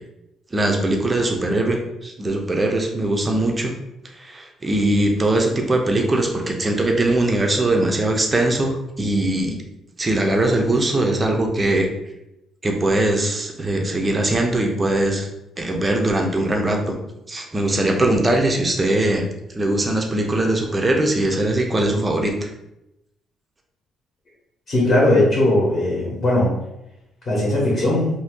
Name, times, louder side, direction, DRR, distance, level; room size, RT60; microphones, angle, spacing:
voice 1, 0.5-3.7 4.1-9.6 10.0-11.9 12.6-15.3 15.6-17.0 17.3-19.2 19.5-22.5, right 1 dB, 15° right, 2 dB, 0.4 m, -21 dB
voice 2, 24.7-26.5 27.3-28.1, left 1 dB, 30° left, -5 dB, 0.9 m, -18 dB
2.7 x 2.6 x 3.6 m, 0.87 s
cardioid pair, 170°, 0 cm